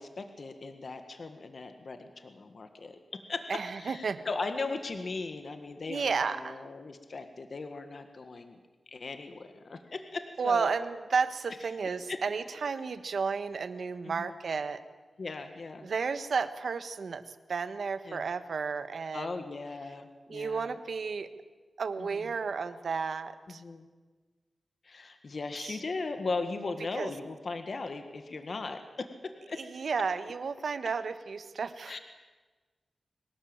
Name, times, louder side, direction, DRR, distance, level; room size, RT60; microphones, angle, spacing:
voice 1, 0.0-8.6 8.9-10.7 12.1-12.2 14.2-14.3 15.2-15.9 18.1-18.2 19.1-20.7 22.0-22.2 23.5-23.9 24.8-29.6 31.9-32.0, left 3 dB, 50° left, 7 dB, 1.7 m, -38 dB
voice 2, 3.5-4.2 5.9-6.6 10.4-14.8 15.8-19.4 20.3-21.3 21.8-23.6 25.5-25.8 26.9-27.1 29.5-32.0, right 5 dB, 65° right, 11 dB, 1.3 m, -32 dB
23.0 x 19.5 x 8.9 m, 1.3 s
wide cardioid pair, 170°, 0 cm